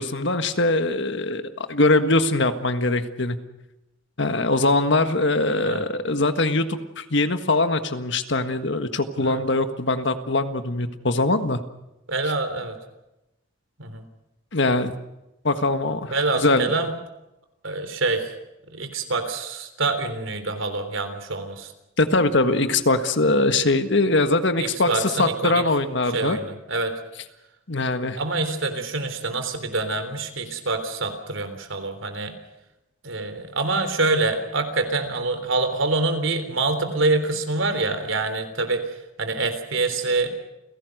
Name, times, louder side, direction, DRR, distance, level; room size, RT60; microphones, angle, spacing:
voice 1, 0.0-3.4 4.2-11.6 14.5-14.9 15.4-16.7 22.0-26.4 27.7-28.2, left 2 dB, 60° left, 9 dB, 1.6 m, -22 dB
voice 2, 12.1-12.8 13.8-14.0 16.1-16.9 17.6-18.3 18.7-21.7 24.6-25.6 26.1-26.9 28.2-32.3 33.0-40.3, right 3 dB, 70° right, 8 dB, 3.6 m, -26 dB
29.5 x 17.5 x 6.5 m, 0.94 s
head